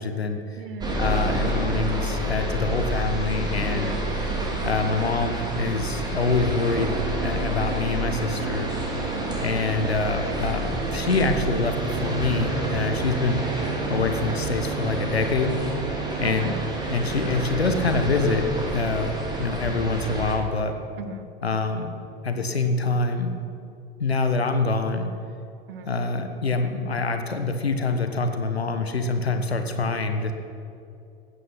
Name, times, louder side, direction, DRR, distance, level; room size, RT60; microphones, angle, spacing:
voice 1, 0.0-0.4 1.0-4.0 4.6-8.7 9.4-13.4 13.9-15.6 16.2-16.5 16.9-19.1 19.4-20.7 21.4-21.9 22.2-23.3 24.0-25.1 25.9-30.3, left 3 dB, 80° left, 6 dB, 1.3 m, -25 dB
voice 2, 0.6-1.0 3.7-4.0 9.1-9.5 16.2-16.7 21.0-21.3 25.7-25.9, right 4 dB, 65° right, 10 dB, 1.2 m, -37 dB
sound 1, 0.8-20.3, right 1 dB, 15° right, 2.7 m, -29 dB
sound 2, 6.4-19.5, right 10 dB, 45° right, 0.9 m, -36 dB
15.5 x 9.8 x 6.1 m, 2.6 s
figure-of-eight pair, 80°, 31 cm